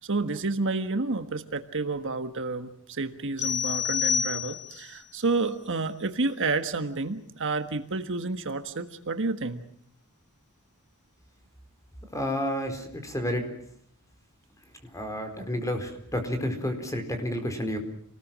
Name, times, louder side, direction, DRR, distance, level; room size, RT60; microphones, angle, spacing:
voice 1, 0.0-9.6, right 3 dB, 60° right, 8 dB, 1.5 m, -30 dB
sound 1, 3.4-4.9, left 7 dB, 85° left, 5.2 m, -28 dB
voice 2, 12.1-13.5 14.9-17.8, equal, 15° left, 6 dB, 4.3 m, -30 dB
28.0 x 20.0 x 7.6 m, 0.65 s
head